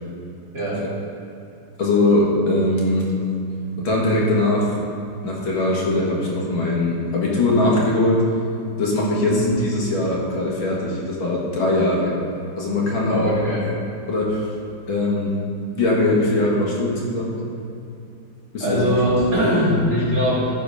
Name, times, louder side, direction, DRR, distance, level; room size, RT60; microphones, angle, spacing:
voice 1, 0.5-0.8 9.3-9.6 13.1-13.6 18.6-20.5, equal, 40° right, -8 dB, 3.1 m, -21 dB
voice 2, 1.8-3.2 3.8-4.8 5.2-8.3 8.8-12.1 12.6-13.4 14.1-14.5 14.9-15.4 15.7-17.3 18.5-18.9, left 2 dB, 65° left, -4 dB, 2.3 m, -21 dB
14.0 x 4.9 x 5.3 m, 2.7 s
omnidirectional pair, 2.4 m